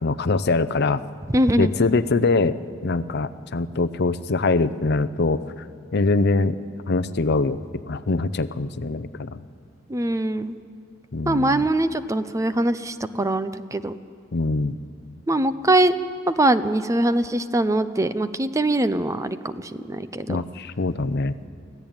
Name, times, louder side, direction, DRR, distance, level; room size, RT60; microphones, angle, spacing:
voice 1, 0.0-1.0 1.6-2.5 2.8-5.7 5.9-6.6 6.9-7.6 7.9-9.4 11.1-11.7 14.3-14.8 20.3-21.3, left 3 dB, 55° left, 14 dB, 0.6 m, -23 dB
voice 2, 1.3-1.7 9.9-10.6 11.3-13.9 15.3-16.0 16.3-20.4, right 1 dB, 15° right, 12 dB, 0.5 m, -22 dB
24.5 x 15.5 x 8.9 m, 2.3 s
head